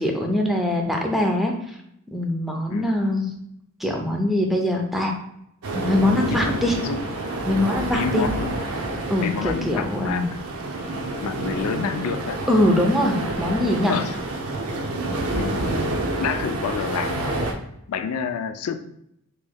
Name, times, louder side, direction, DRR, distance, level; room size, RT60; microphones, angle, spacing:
voice 1, 0.0-1.8 2.1-3.3 3.8-5.1 5.7-6.8 7.5-8.3 9.1-10.3 12.5-13.9, left 1 dB, ahead, 1 dB, 0.4 m, -22 dB
sound 1, 5.6-17.5, right 2 dB, 90° right, 0.6 m, -28 dB
voice 2, 6.3-7.0 7.9-8.6 9.2-10.2 11.2-12.4 13.9-14.2 15.3-15.9 16.2-17.5 17.9-18.8, left 6 dB, 90° left, 9 dB, 0.3 m, -28 dB
3.3 x 3.1 x 2.2 m, 0.76 s
head